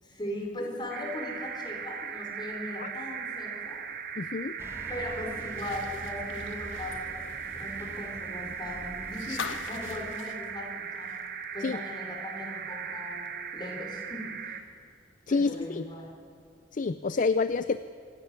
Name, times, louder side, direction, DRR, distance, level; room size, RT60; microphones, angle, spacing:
voice 1, 0.0-3.8 4.9-7.3 7.5-11.1 11.5-14.6 15.3-16.2, left 1 dB, 25° left, 0 dB, 4.4 m, -39 dB
sound 1, 0.9-14.6, right 7 dB, 50° right, 1.4 m, -38 dB
voice 2, 4.2-4.6 11.6-11.8 15.3-15.9 16.7-17.8, left 4 dB, 45° left, 13 dB, 0.4 m, -28 dB
sound 2, 4.6-10.1, equal, 15° right, 1.9 m, -46 dB
sound 3, 5.4-11.4 11.8-11.9 13.3-13.4, left 6 dB, 80° left, 1.2 m, -43 dB
25.5 x 12.5 x 9.7 m, 2.5 s
head